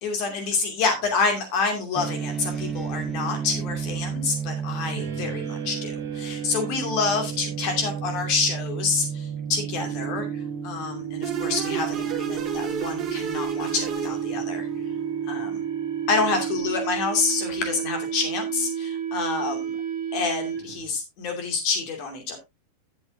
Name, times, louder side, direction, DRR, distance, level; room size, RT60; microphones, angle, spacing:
voice 1, 0.0-10.3 10.6-14.7 15.3-15.6 16.1-19.8 20.1-22.4, left 4 dB, 45° left, 4 dB, 2.6 m, -27 dB
sound 1, 2.0-16.7, right 7 dB, 15° right, 0.7 m, -33 dB
sound 2, 5.0-20.9, right 8 dB, 65° right, 2.3 m, -33 dB
sound 3, 11.2-14.8, right 6 dB, 35° right, 4.9 m, -34 dB
12.0 x 8.3 x 2.8 m, 0.23 s
figure-of-eight pair, 90°, 0 cm